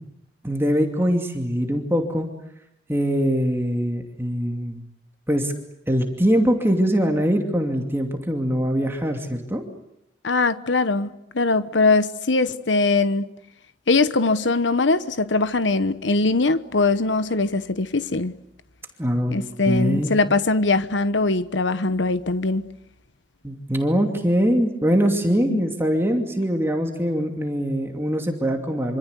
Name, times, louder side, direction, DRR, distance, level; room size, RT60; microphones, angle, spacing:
voice 1, 0.4-2.3 2.9-4.8 5.3-5.5 5.9-9.6 19.0-19.4 19.7-20.1 23.4-29.0, equal, 15° right, 2.6 m, -22 dB
voice 2, 10.2-13.3 13.9-18.4 19.3-22.7 25.5-25.7, left 3 dB, 90° left, 1.1 m, -21 dB
26.5 x 26.5 x 8.2 m
head